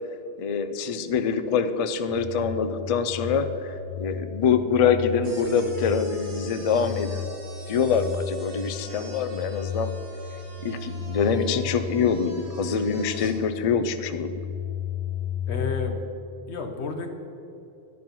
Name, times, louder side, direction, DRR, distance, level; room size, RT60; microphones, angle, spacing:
voice 1, 0.4-7.2 7.7-9.9 10.6-14.3, left 6 dB, 45° left, 10 dB, 0.4 m, -25 dB
sound 1, 2.1-15.7, left 7 dB, 20° right, 2.8 m, -35 dB
sound 2, 5.2-13.3, right 2 dB, 60° right, 1.8 m, -46 dB
voice 2, 15.5-16.0 16.5-17.1, left 4 dB, 80° left, 5 dB, 1.3 m, -31 dB
10.5 x 6.2 x 6.0 m, 2.8 s
omnidirectional pair, 1.1 m